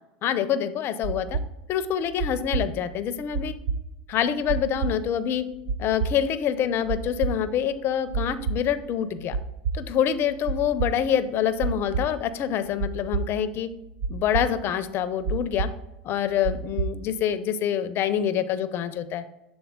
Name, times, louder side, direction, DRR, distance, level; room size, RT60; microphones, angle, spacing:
voice 1, 0.2-1.4 1.7-3.5 4.1-5.4 5.8-9.4 9.7-13.7 14.1-15.7 16.0-19.2, left 9 dB, 45° left, 12 dB, 0.5 m, -26 dB
sound 1, 1.0-17.1, right 5 dB, 60° right, 0.7 m, -29 dB
7.0 x 3.8 x 3.7 m, 0.92 s
hypercardioid pair, 100°, 6 cm